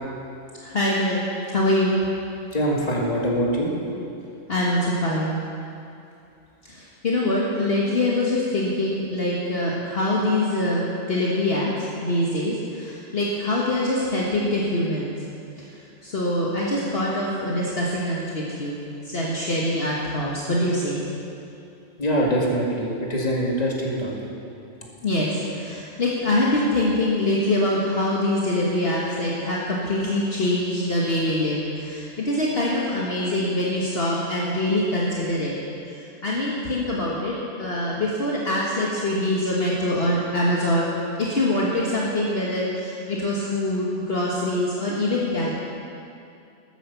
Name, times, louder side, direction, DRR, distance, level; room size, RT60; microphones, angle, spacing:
voice 1, 0.6-2.0 4.5-5.5 6.6-15.2 16.0-21.0 25.0-35.5 35.9-45.5, left 1 dB, 50° left, -5 dB, 1.7 m, -24 dB
voice 2, 2.5-3.7 22.0-24.3, equal, 30° left, -3 dB, 2.2 m, -23 dB
13.0 x 10.0 x 7.0 m, 2.6 s
omnidirectional pair, 1.3 m